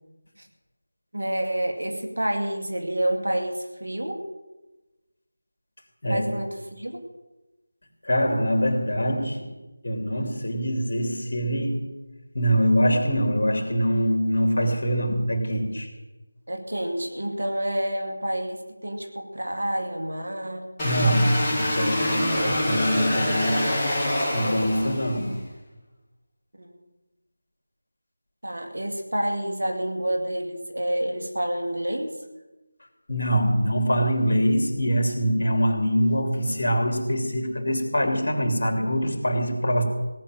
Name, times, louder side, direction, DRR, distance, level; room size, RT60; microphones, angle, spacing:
voice 1, 1.1-4.2 6.1-7.0 16.5-20.6 22.3-22.6 26.6-26.7 28.4-32.1, right 1 dB, 75° right, 4 dB, 2.6 m, -28 dB
voice 2, 8.0-9.5 9.8-11.9 12.3-15.9 20.8-23.6 24.3-25.4 33.1-39.8, equal, 55° left, 3 dB, 2.9 m, -24 dB
sound 1, 20.8-25.3, left 1 dB, 15° left, 2.4 m, -26 dB
18.0 x 6.0 x 9.1 m, 1.1 s
figure-of-eight pair, 165°, 0 cm